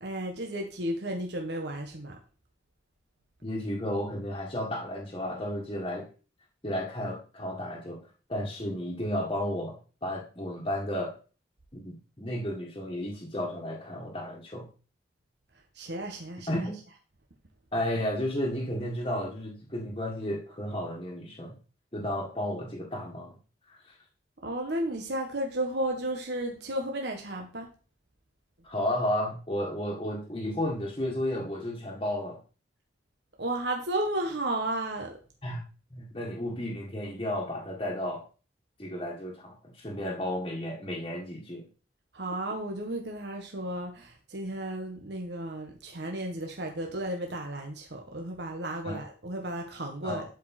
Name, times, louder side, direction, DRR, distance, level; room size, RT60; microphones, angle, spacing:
voice 1, 0.0-2.2 15.7-16.6 24.4-27.7 33.4-35.2 42.1-50.2, right 1 dB, 65° right, 2 dB, 1.3 m, -33 dB
voice 2, 3.4-6.1 6.6-8.0 8.3-9.8 10.0-11.1 11.7-14.7 16.5-16.7 17.7-21.6 21.9-23.4 23.7-23.8 28.6-32.4 35.4-35.7 35.9-38.2 38.8-41.6 48.8-49.0 50.0-50.2, left 1 dB, 25° left, -3 dB, 1.6 m, -33 dB
12.0 x 5.0 x 4.2 m, 0.36 s
head